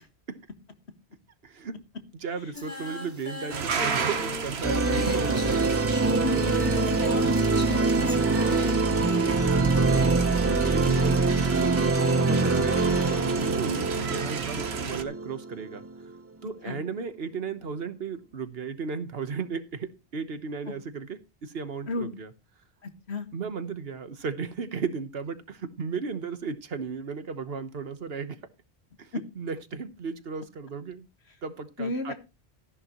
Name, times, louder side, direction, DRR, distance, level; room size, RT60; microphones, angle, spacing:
voice 1, 1.4-1.8 2.1-5.7 6.1-6.5 7.8-8.8 9.2-10.2 10.6-16.1 16.4-22.3 23.3-28.4 29.0-31.1 31.4-32.1, right 5 dB, 65° right, 1.3 m, -35 dB
Singing, 2.5-8.7, left 1 dB, 15° left, 3.3 m, -37 dB
sound 1, 3.5-15.0, right 6 dB, 85° right, 1.3 m, -33 dB
sound 2, 4.6-16.0, right 3 dB, 20° right, 0.4 m, -24 dB
voice 2, 6.2-7.2 7.7-7.8 16.7-16.8 21.9-22.1 23.1-23.3 29.1-29.2 31.8-32.1, left 3 dB, 85° left, 1.8 m, -32 dB
14.0 x 11.0 x 3.0 m
omnidirectional pair, 1.1 m